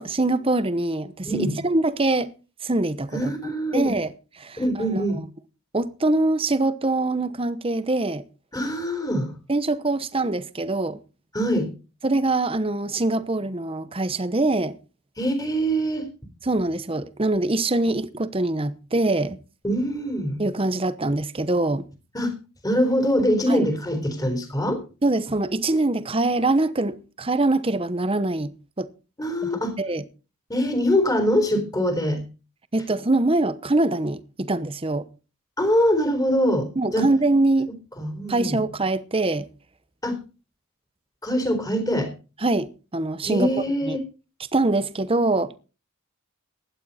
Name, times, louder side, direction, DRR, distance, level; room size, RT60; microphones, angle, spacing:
voice 1, 0.0-2.3 2.6-3.3 3.7-4.1 4.4-5.0 5.7-8.2 9.5-11.0 12.0-14.8 16.4-19.4 20.4-21.9 23.5-23.7 25.0-28.9 29.8-30.0 32.7-35.1 36.8-37.7 38.3-39.5 42.4-43.5 43.9-44.0 44.5-45.6, right 2 dB, 25° right, 0.9 m, -23 dB
voice 2, 3.1-3.8 4.6-5.2 8.5-9.3 11.3-11.7 15.2-16.1 19.6-20.4 22.1-22.3 22.6-24.8 29.2-29.8 30.5-32.2 35.6-37.1 38.0-38.6 40.0-40.2 41.2-42.1 43.2-44.0, equal, 15° left, 3.9 m, -23 dB
16.0 x 11.5 x 4.2 m
head